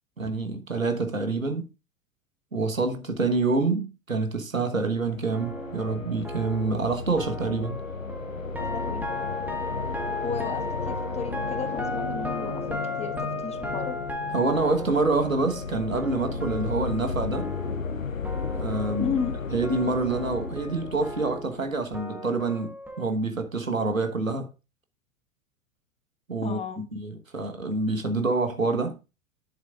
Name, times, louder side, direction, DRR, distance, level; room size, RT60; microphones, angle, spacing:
voice 1, 0.2-1.6 2.5-7.8 14.3-17.5 18.5-19.1 19.5-24.5 26.3-26.6 26.9-29.0, right 3 dB, 90° right, 1.3 m, -27 dB
sound 1, 4.9-21.9, left 5 dB, 80° left, 1.1 m, -34 dB
sound 2, 5.3-18.0 18.2-23.1, left 1 dB, 5° right, 1.5 m, -36 dB
voice 2, 8.6-9.0 10.2-12.6 13.0-14.0 19.0-19.3 26.4-27.0, left 6 dB, 15° left, 1.4 m, -33 dB
sound 3, 11.5-19.9, left 10 dB, 65° left, 2.0 m, -46 dB
10.5 x 7.4 x 2.4 m
figure-of-eight pair, 90°, 39 cm